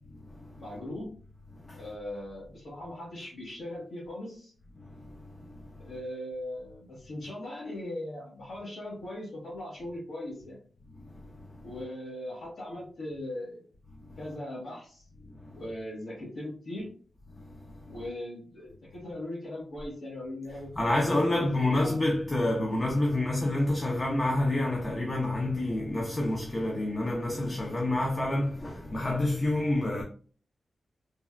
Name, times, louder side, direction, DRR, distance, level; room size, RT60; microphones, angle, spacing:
voice 1, 0.6-1.1 1.7-4.5 5.8-10.6 11.6-13.6 14.2-15.0 15.5-16.9 17.9-21.9, left 1 dB, 70° left, 1.1 m, -39 dB
voice 2, 4.8-5.6 11.0-11.6 15.4-15.5 17.4-17.9 20.8-30.0, left 1 dB, 30° left, 0.4 m, -28 dB
3.2 x 2.2 x 2.3 m
wide cardioid pair, 120°, 0 cm